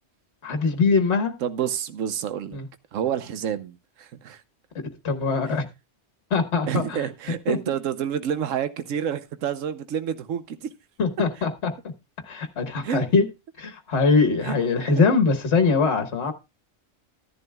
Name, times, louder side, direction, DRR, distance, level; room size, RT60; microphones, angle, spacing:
voice 1, 0.4-1.3 2.5-2.7 5.0-5.7 6.3-7.0 7.5-7.6 11.0-11.7 12.2-13.3 13.6-16.3, left 4 dB, 60° left, 1.6 m, -22 dB
voice 2, 1.4-2.6 2.9-4.4 5.5-5.6 6.7-10.7 12.8-13.0 14.4-14.6 14.9-15.0, right 9 dB, 85° right, 1.1 m, -29 dB
14.0 x 11.0 x 2.2 m
omnidirectional pair, 1.3 m